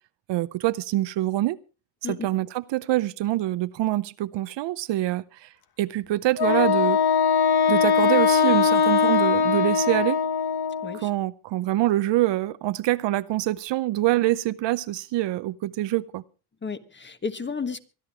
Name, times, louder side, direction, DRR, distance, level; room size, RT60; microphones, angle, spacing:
voice 1, 0.3-1.6 2.1-5.5 5.8-7.0 7.7-10.2 10.9-16.2, right 15 dB, 65° right, 0.7 m, -25 dB
Wind instrument woodwind instrument, 6.4-11.0, left 6 dB, 50° left, 1.3 m, -21 dB
voice 2, 16.6-17.8, left 5 dB, 25° left, 1.3 m, -32 dB
24.5 x 11.0 x 3.5 m
supercardioid pair, 85°, 48 cm